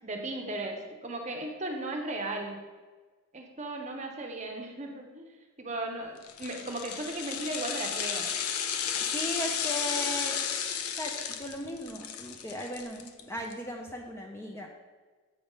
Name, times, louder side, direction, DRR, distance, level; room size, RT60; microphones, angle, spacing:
voice 1, 0.0-2.6 3.3-8.3, right 2 dB, 30° right, 3 dB, 0.7 m, -36 dB
sound 1, 6.2-13.5 13.9-14.0, left 8 dB, 85° left, 0.5 m, -33 dB
voice 2, 8.9-10.4 10.9-14.7, equal, 10° left, 1 dB, 0.4 m, -37 dB
7.9 x 3.4 x 5.3 m, 1.4 s
head